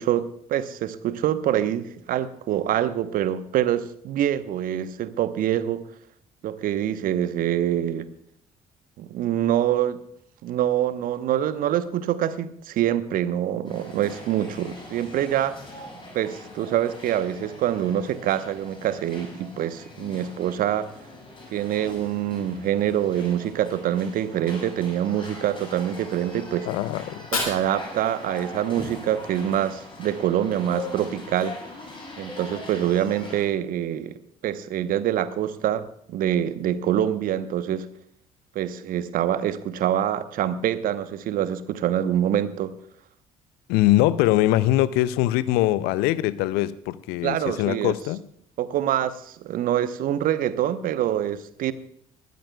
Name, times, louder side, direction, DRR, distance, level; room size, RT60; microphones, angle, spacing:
voice 1, 0.0-5.8 6.4-8.1 9.0-10.0 10.4-15.6 16.1-20.9 21.5-26.7 27.3-31.6 32.2-37.8 38.5-42.7 47.2-47.9 48.6-51.7, right 11 dB, 55° right, 13 dB, 1.0 m, -25 dB
sound 1, 13.6-33.5, left 2 dB, 30° left, 7.0 m, -42 dB
voice 2, 26.7-27.2 43.7-48.2, left 15 dB, 65° left, 17 dB, 0.6 m, -22 dB
Fire, 27.0-29.0, left 3 dB, 85° left, 2.6 m, -33 dB
20.5 x 14.5 x 2.3 m, 0.70 s
figure-of-eight pair, 50°, 17 cm